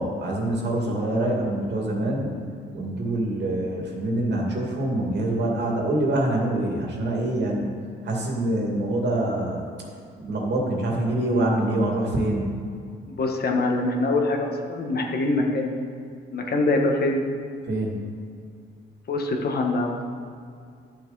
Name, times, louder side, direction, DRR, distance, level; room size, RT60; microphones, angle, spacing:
voice 1, 0.0-2.4 2.7-7.7 8.0-9.6 10.2-12.5 17.7-17.9, right 1 dB, 60° right, -1 dB, 2.3 m, -25 dB
voice 2, 13.1-15.7 16.3-17.2 19.1-19.9, left 2 dB, 55° left, 1 dB, 1.5 m, -24 dB
11.5 x 7.0 x 4.1 m, 2.3 s
cardioid pair, 90°, 20 cm